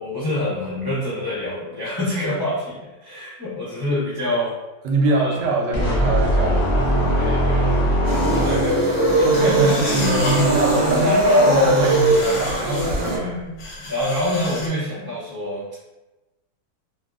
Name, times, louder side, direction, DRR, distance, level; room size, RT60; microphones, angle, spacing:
voice 1, 0.0-4.5 5.1-5.5 7.2-9.9 10.8-11.6 12.1-12.3 13.0-15.7, left 1 dB, 30° left, -10 dB, 0.4 m, -27 dB
voice 2, 4.8-7.0 9.2-11.2 11.5-13.4, right 2 dB, 75° right, 0 dB, 1.1 m, -23 dB
sound 1, 5.7-8.9, equal, 45° left, 0.9 m, -20 dB
sound 2, 8.0-13.2, right 1 dB, 55° right, 0.8 m, -19 dB
sound 3, 9.3-10.6 11.5-13.1 13.6-14.7, left 1 dB, 75° left, 0.7 m, -32 dB
2.8 x 2.6 x 2.4 m, 1.1 s
omnidirectional pair, 1.9 m